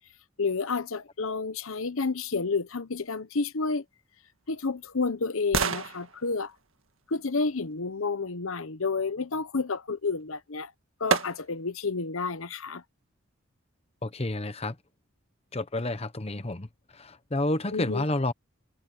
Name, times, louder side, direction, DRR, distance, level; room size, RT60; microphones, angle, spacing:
voice 1, 0.4-3.8 4.5-6.5 7.1-10.7 11.0-12.8 17.7-18.0, left 4 dB, 70° left, 1.0 m, -30 dB
sound 1, 4.0-8.1 10.2-10.3 11.1-11.8 12.3-12.4, right 5 dB, 70° right, 1.8 m, -33 dB
voice 2, 14.0-14.8 15.5-16.7 16.9-18.3, left 2 dB, 30° left, 1.1 m, -30 dB
head